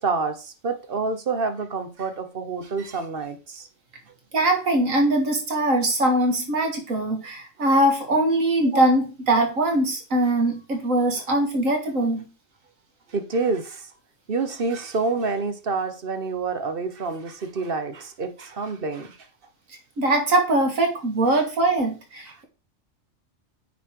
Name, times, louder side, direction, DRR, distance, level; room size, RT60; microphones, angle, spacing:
voice 1, 0.0-3.7 13.1-13.9 14.3-19.2 21.3-21.4, right 4 dB, 45° right, 1.1 m, -28 dB
voice 2, 4.3-12.3 20.0-22.4, right 1 dB, 90° right, 2.3 m, -22 dB
9.3 x 4.2 x 4.6 m
omnidirectional pair, 1.4 m